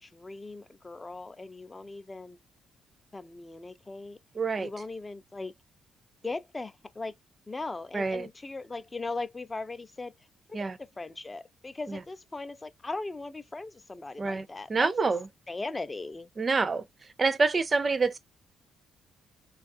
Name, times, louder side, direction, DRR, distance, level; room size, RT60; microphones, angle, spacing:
voice 1, 0.0-2.4 3.1-4.2 4.6-5.5 6.2-7.1 7.5-10.1 10.5-10.7 11.0-15.1 15.5-16.3, left 3 dB, 20° left, 0.4 m, -39 dB
voice 2, 4.3-4.7 7.9-8.3 10.5-10.8 11.9-12.0 14.2-15.3 16.4-16.8 17.2-18.2, right 4 dB, 35° right, 0.5 m, -27 dB
3.1 x 2.3 x 2.5 m
cardioid pair, 90°, 0 cm